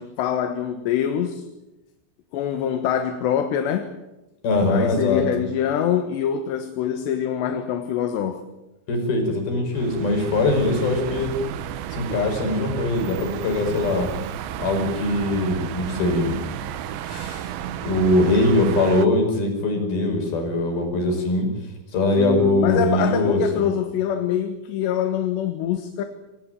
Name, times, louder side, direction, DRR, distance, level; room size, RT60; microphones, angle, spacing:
voice 1, 0.0-1.5 2.3-4.0 4.7-8.4 22.2-26.0, left 9 dB, 75° left, 7 dB, 3.5 m, -24 dB
voice 2, 4.4-5.2 8.9-11.3 11.9-14.1 14.6-16.4 17.0-17.5 17.8-21.5 21.9-23.7, left 2 dB, 55° left, 4 dB, 7.1 m, -22 dB
sound 1, 9.7-19.1, right 10 dB, 85° right, 3.5 m, -32 dB
26.5 x 18.5 x 9.0 m, 1.0 s
omnidirectional pair, 5.2 m